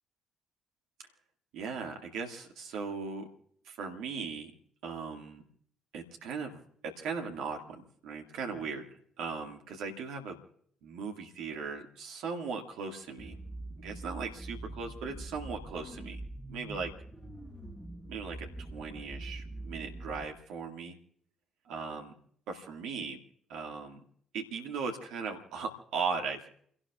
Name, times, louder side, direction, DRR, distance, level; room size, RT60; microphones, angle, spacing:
voice 1, 1.5-3.3 3.6-4.5 4.8-5.4 5.9-8.9 9.2-10.4 10.8-13.4 13.8-16.2 16.5-16.9 18.1-21.0 21.7-22.1 22.5-23.2 23.5-24.0 24.3-26.5, right 5 dB, 65° right, 3 dB, 2.0 m, -38 dB
sound 1, 13.2-20.3, right 1 dB, 10° left, 7.3 m, -44 dB
29.5 x 17.5 x 2.4 m, 0.62 s
figure-of-eight pair, 45°, 0 cm